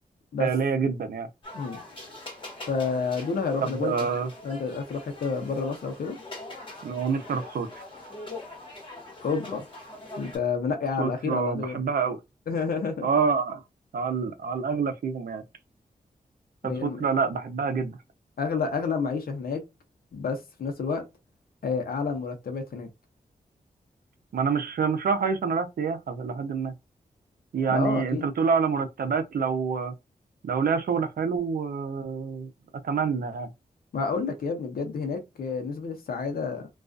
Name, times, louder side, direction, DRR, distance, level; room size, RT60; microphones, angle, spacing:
voice 1, 0.4-1.3 3.6-4.3 6.8-7.8 11.0-12.2 13.0-13.6 13.9-15.4 16.6-18.0 24.3-26.7 27.5-29.9 30.4-32.5 32.8-33.5, right 5 dB, 80° right, 0.5 m, -27 dB
sound 1, 1.4-10.4, left 2 dB, 35° left, 1.2 m, -43 dB
voice 2, 2.7-3.9 4.4-6.2 9.2-9.6 10.2-11.8 12.5-13.1 16.6-17.1 18.4-19.6 20.1-21.0 21.6-22.9 27.7-28.3 33.9-36.7, left 5 dB, 85° left, 0.7 m, -29 dB
2.3 x 2.3 x 2.4 m
wide cardioid pair, 100°, 15 cm